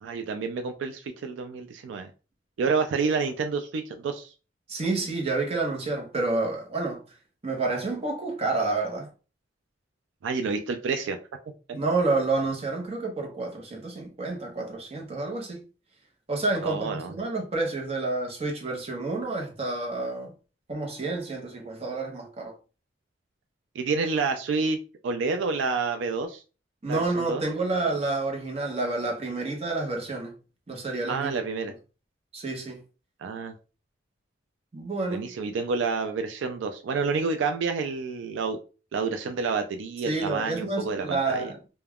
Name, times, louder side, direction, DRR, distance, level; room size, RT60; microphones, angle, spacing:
voice 1, 0.0-2.1 2.6-4.3 10.2-11.2 16.6-17.1 23.8-24.8 25.0-26.4 26.9-27.4 31.1-31.7 33.2-33.5 35.1-38.6 38.9-41.5, right 4 dB, 80° right, 0.3 m, -29 dB
voice 2, 4.7-7.0 7.4-9.1 11.7-15.6 16.3-20.3 20.7-22.6 26.8-30.3 30.7-31.3 32.3-32.8 34.7-35.3 40.0-41.6, right 3 dB, 35° right, 0.7 m, -29 dB
2.3 x 2.2 x 3.4 m
head